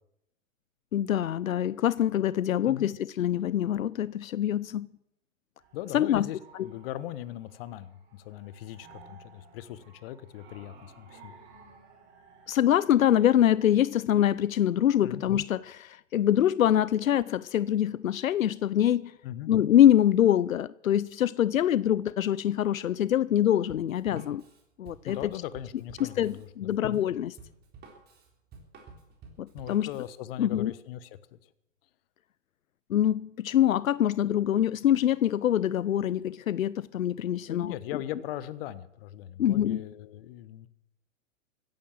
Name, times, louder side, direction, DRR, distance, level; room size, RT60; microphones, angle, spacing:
voice 1, 0.9-4.9 5.9-6.3 12.5-19.1 19.5-24.4 24.8-25.2 26.0-27.3 29.4-29.9 30.4-30.7 32.9-37.8 39.4-39.8, left 11 dB, 90° left, 0.6 m, -24 dB
Roars of digital decay, 5.6-12.5, right 5 dB, 50° right, 5.5 m, -55 dB
voice 2, 5.7-11.4 15.0-15.2 19.2-19.5 24.1-24.3 25.0-27.0 29.5-31.4 37.5-40.7, left 12 dB, 45° left, 1.2 m, -39 dB
Drum kit, 23.7-30.2, right 4 dB, 25° right, 3.9 m, -51 dB
16.0 x 11.0 x 7.6 m
hypercardioid pair, 125°, 39 cm